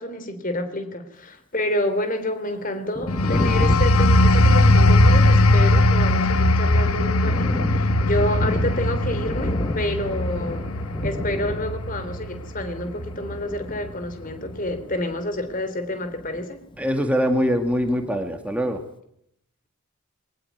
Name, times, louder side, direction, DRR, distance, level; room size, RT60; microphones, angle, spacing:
voice 1, 0.0-10.7 11.0-16.6, left 1 dB, 40° left, 9 dB, 3.4 m, -28 dB
Thunder, 2.7-17.2 17.4-18.7, left 1 dB, 20° left, 1.1 m, -34 dB
sound 1, 3.1-13.4 13.9-14.1, left 1 dB, 80° left, 1.3 m, -19 dB
voice 2, 16.8-18.8, equal, 5° right, 5 dB, 2.0 m, -23 dB
22.0 x 20.0 x 9.4 m, 0.72 s
head